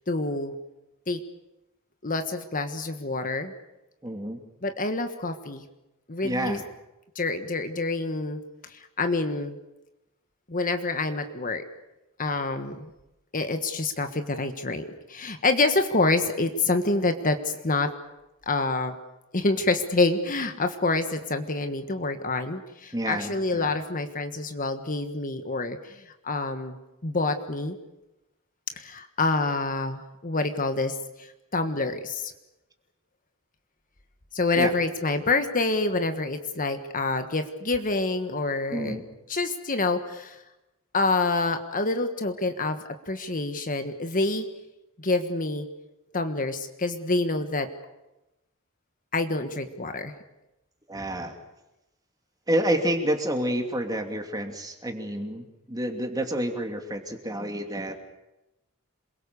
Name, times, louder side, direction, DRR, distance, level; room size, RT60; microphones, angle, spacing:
voice 1, 0.1-0.5 1.1-1.2 2.0-3.5 4.6-5.6 6.1-6.6 7.1-9.6 10.5-11.6 12.2-12.9 13.3-17.9 18.5-19.0 19.3-26.8 27.0-27.8 28.8-32.3 34.3-39.0 39.3-40.4 40.9-44.5 45.0-45.7 46.1-47.7 49.1-50.1, left 3 dB, 40° left, 7 dB, 1.5 m, -27 dB
voice 2, 4.0-4.4 6.2-6.6 22.9-23.7 34.5-34.7 38.7-39.0 50.9-51.4 52.5-58.0, right 1 dB, 15° right, 4 dB, 2.7 m, -29 dB
27.5 x 22.5 x 7.0 m, 0.95 s
head